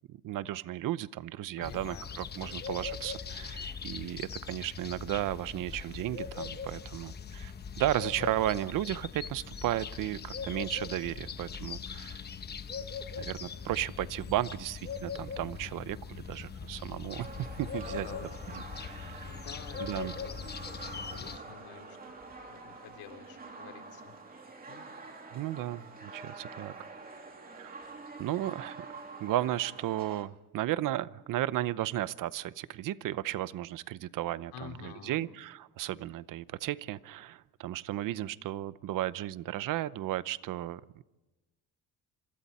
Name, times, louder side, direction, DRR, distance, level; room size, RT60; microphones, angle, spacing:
voice 1, 0.1-12.2 13.2-17.3 17.6-18.1 18.8-19.2 19.8-20.1 25.3-26.7 27.6-27.8 28.2-28.9 29.2-40.8, right 14 dB, 65° right, 17 dB, 0.8 m, -34 dB
voice 2, 1.6-2.6 8.1-8.5 17.8-22.0 22.5-24.8 34.5-35.3, left 8 dB, 90° left, 4 dB, 3.9 m, -50 dB
sound 1, 1.6-21.4, left 6 dB, 30° left, 1.0 m, -41 dB
sound 2, 17.1-30.2, right 3 dB, 25° right, 2.9 m, -47 dB
27.5 x 26.5 x 4.3 m, 1.1 s
cardioid pair, 145°, 35 cm